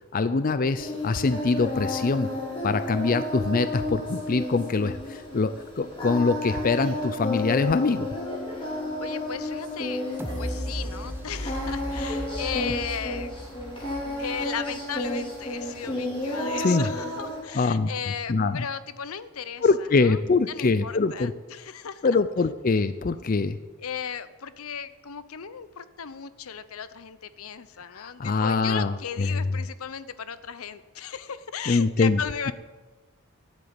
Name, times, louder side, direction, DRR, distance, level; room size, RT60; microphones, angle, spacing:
voice 1, 0.1-2.3 2.6-8.1 16.6-16.9 17.5-17.9 18.3-18.7 19.6-21.3 22.0-23.6 27.9-29.4 31.7-32.2, left 4 dB, 40° left, 13 dB, 0.4 m, -24 dB
Singing, 0.8-17.4, left 1 dB, 25° left, 3.5 m, -32 dB
voice 2, 8.5-10.1 10.4-13.3 14.2-19.7 19.9-20.2 20.5-22.1 23.8-32.5, left 7 dB, 75° left, 15 dB, 0.7 m, -36 dB
sound 1, 10.2-15.1 15.5-15.6, equal, 10° right, 1.0 m, -36 dB
12.0 x 8.2 x 8.7 m, 1.3 s
head